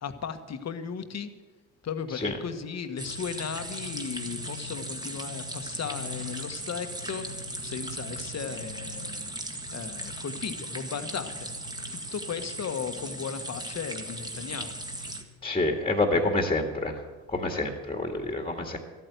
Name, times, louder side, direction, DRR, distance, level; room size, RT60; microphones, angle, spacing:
voice 1, 0.0-1.3 1.8-9.3 9.7-11.5 11.9-14.7, left 7 dB, 45° left, 9 dB, 1.4 m, -36 dB
sound 1, 3.0-15.2, right 1 dB, 10° right, 1.8 m, -37 dB
voice 2, 15.4-17.0 17.3-18.8, left 2 dB, 15° left, 4 dB, 1.9 m, -27 dB
13.0 x 9.1 x 8.2 m, 1.3 s
supercardioid pair, 80°, 38 cm